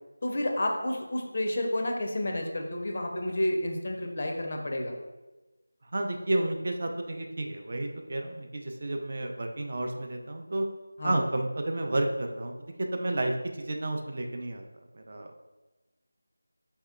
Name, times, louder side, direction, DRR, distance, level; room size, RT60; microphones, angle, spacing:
voice 1, 0.2-5.0 11.0-11.2, left 1 dB, 40° left, 2 dB, 0.4 m, -30 dB
voice 2, 5.9-10.7 11.0-12.5 12.9-14.6 14.9-15.4, right 1 dB, 40° right, 3 dB, 0.3 m, -31 dB
4.2 x 2.7 x 2.4 m, 1.1 s
figure-of-eight pair, 165°, 0 cm